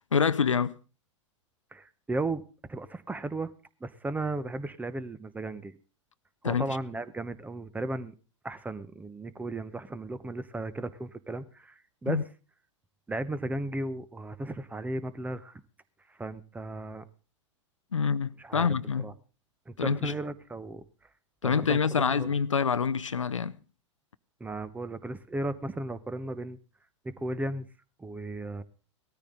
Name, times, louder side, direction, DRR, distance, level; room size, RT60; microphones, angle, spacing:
voice 1, 0.1-0.8 6.4-6.7 12.1-12.2 17.9-19.1 19.8-20.2 21.4-23.6, left 6 dB, 80° left, 0.6 m, -26 dB
voice 2, 1.7-2.4 2.7-3.5 3.8-5.8 6.4-8.1 8.4-12.2 13.1-15.6 16.1-17.0 18.4-18.7 19.0-19.1 19.7-20.8 21.4-22.3 24.4-26.6 27.2-27.7 28.0-28.6, right 2 dB, 10° right, 1.0 m, -35 dB
18.5 x 13.5 x 3.9 m
figure-of-eight pair, 90°, 16 cm